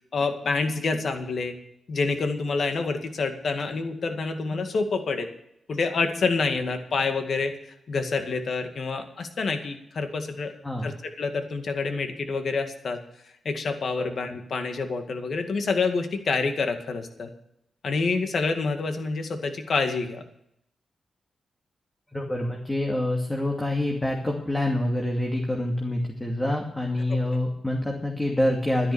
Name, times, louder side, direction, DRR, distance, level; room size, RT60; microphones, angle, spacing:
voice 1, 0.1-1.6 1.9-5.3 5.7-10.5 10.8-13.0 13.4-17.3 17.8-20.2 27.1-27.2, left 4 dB, 60° left, 6 dB, 2.1 m, -27 dB
voice 2, 10.6-10.9 14.0-14.1 22.1-28.9, left 1 dB, 15° left, 0 dB, 2.4 m, -26 dB
12.0 x 11.0 x 7.1 m, 0.76 s
cardioid pair, 70°, 0 cm